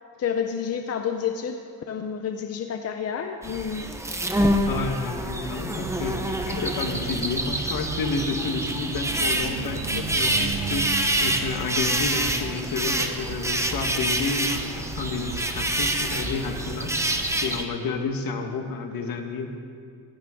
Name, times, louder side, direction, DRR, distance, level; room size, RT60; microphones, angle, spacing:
voice 1, 0.2-1.6 1.9-3.9, left 7 dB, 45° left, 6 dB, 0.7 m, -29 dB
sound 1, 3.4-17.6, right 1 dB, 10° right, 0.8 m, -27 dB
voice 2, 4.7-17.0 17.4-19.5, left 4 dB, 70° left, 4 dB, 1.6 m, -30 dB
sound 2, 5.8-17.4, right 8 dB, 55° right, 0.9 m, -37 dB
17.0 x 16.0 x 3.8 m, 2.3 s
cardioid pair, 145°, 36 cm